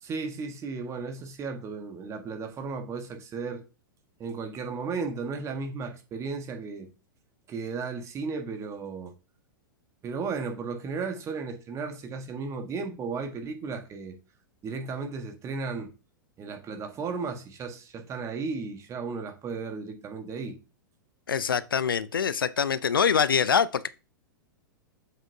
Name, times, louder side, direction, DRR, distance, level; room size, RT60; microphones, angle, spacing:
voice 1, 0.0-3.6 4.2-6.9 7.5-9.1 10.0-14.2 14.6-15.9 16.4-20.6, right 4 dB, 25° right, 1.4 m, -35 dB
voice 2, 21.3-23.9, left 7 dB, 80° left, 0.5 m, -24 dB
7.4 x 5.9 x 2.7 m
figure-of-eight pair, 100°, 11 cm